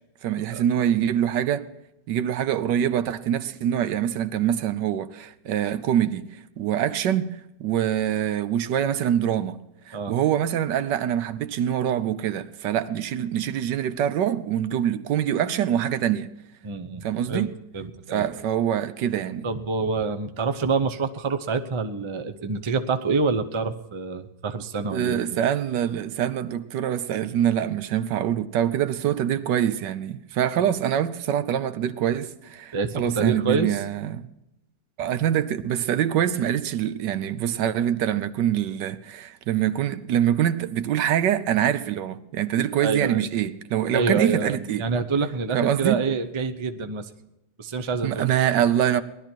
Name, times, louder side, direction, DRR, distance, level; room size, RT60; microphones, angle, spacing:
voice 1, 0.2-1.7 2.1-9.6 9.9-16.3 17.0-17.5 18.1-19.5 24.9-34.3 35.0-44.9 45.5-46.0 48.0-49.0, right 10 dB, 75° right, 1.3 m, -24 dB
voice 2, 16.6-17.5 17.7-18.3 19.4-25.4 32.7-33.8 42.8-43.3 43.9-47.1 47.6-48.3, right 4 dB, 45° right, 0.3 m, -27 dB
19.0 x 12.0 x 4.5 m
omnidirectional pair, 2.0 m